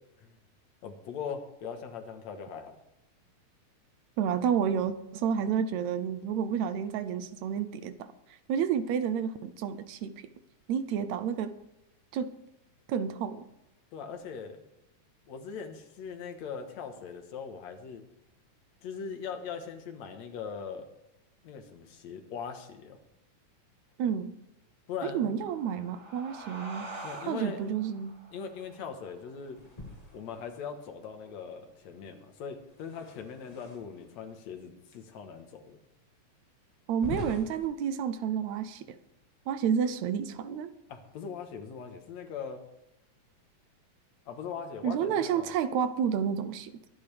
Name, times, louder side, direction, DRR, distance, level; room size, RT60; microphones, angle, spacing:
voice 1, 0.8-2.8 13.9-14.6 15.3-18.0 18.8-20.9 21.4-23.0 24.9-25.3 27.0-27.6 28.3-29.6 30.1-35.8 40.9-42.6 44.3-45.5, left 6 dB, 70° left, 6 dB, 2.5 m, -40 dB
voice 2, 4.2-10.1 10.7-11.5 12.1-12.3 12.9-13.4 24.0-24.3 25.0-26.9 27.3-28.2 36.9-39.0 39.5-40.7 44.8-46.7, right 8 dB, 75° right, 12 dB, 1.9 m, -30 dB
sound 1, 25.3-30.5, right 2 dB, 40° right, 3.1 m, -46 dB
sound 2, 29.5-30.9 32.7-34.2 34.9-35.0 35.7-35.8 36.9-37.7, left 1 dB, 35° left, 0.6 m, -43 dB
23.5 x 10.5 x 3.4 m, 0.85 s
omnidirectional pair, 3.4 m